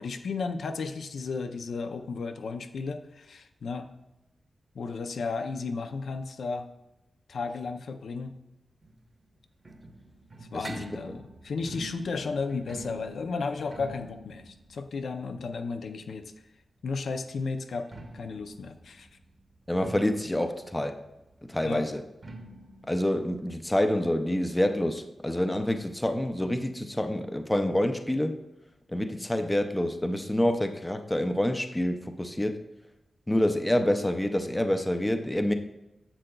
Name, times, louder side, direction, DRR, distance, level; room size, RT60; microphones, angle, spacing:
voice 1, 0.0-3.9 4.7-6.7 7.3-8.3 10.5-16.3 16.8-19.1 21.6-21.8, left 4 dB, 75° left, 7 dB, 0.5 m, -34 dB
sound 1, 8.8-16.5 17.6-25.0 25.3-25.4 25.6-25.7 26.4-26.5, right 2 dB, 30° right, 0.8 m, -47 dB
voice 2, 10.5-11.2 19.7-21.0 21.4-22.0 22.9-28.4 28.9-32.6 33.3-35.5, left 1 dB, 10° left, 7 dB, 0.4 m, -27 dB
9.9 x 7.7 x 2.3 m, 0.94 s
wide cardioid pair, 170°, 0 cm